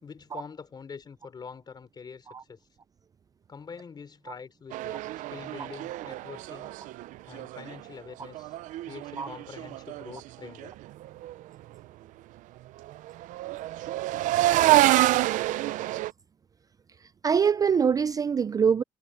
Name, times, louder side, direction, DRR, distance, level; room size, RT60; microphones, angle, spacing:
voice 1, 0.0-2.6 3.5-5.0 5.3-6.7 7.2-8.6 8.8-10.8, left 5 dB, 35° left, 4.4 m, -45 dB
sound 1, 4.7-7.9 8.2-10.2 10.4-10.7 11.0-11.3 12.9-16.1, right 16 dB, 80° right, 0.6 m, -27 dB
voice 2, 17.2-18.8, right 6 dB, 30° right, 0.4 m, -24 dB
cardioid pair, 125°, 13 cm